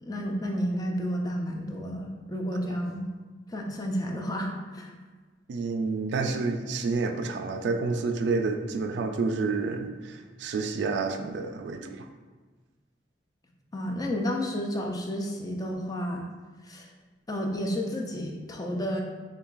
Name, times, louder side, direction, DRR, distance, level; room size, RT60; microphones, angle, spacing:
voice 1, 0.0-3.1 3.5-4.9 13.7-16.3 16.6-16.9 17.3-19.0, equal, 20° left, 1 dB, 0.4 m, -31 dB
voice 2, 5.5-12.1, right 4 dB, 65° right, 6 dB, 0.3 m, -29 dB
6.7 x 2.3 x 2.4 m, 1.3 s
head